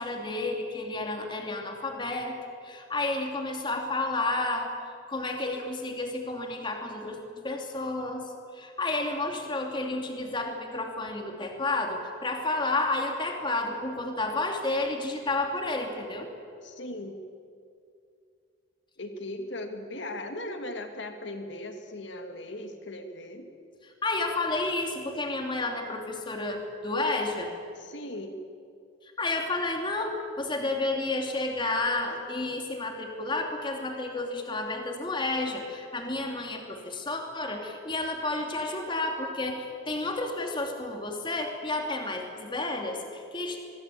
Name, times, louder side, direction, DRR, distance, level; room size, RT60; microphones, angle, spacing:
voice 1, 0.0-2.4 2.6-4.7 5.1-7.2 7.4-16.3 23.8-27.5 29.0-43.6, left 2 dB, 25° left, 3 dB, 3.0 m, -31 dB
voice 2, 16.6-17.2 19.0-23.5 27.8-28.4, left 1 dB, 60° left, 6 dB, 2.5 m, -38 dB
24.5 x 23.0 x 8.7 m, 2.4 s
head